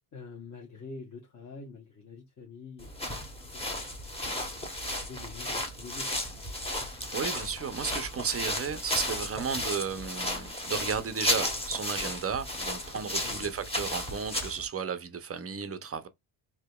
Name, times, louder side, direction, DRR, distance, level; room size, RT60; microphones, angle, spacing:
voice 1, 0.1-4.4 4.9-6.1 13.2-13.5, left 4 dB, 35° left, 1.0 m, -47 dB
sound 1, 2.8-14.7, left 1 dB, 10° left, 0.9 m, -34 dB
voice 2, 7.1-16.1, right 6 dB, 30° right, 0.5 m, -34 dB
4.7 x 2.8 x 2.2 m
cardioid pair, 120°, 49 cm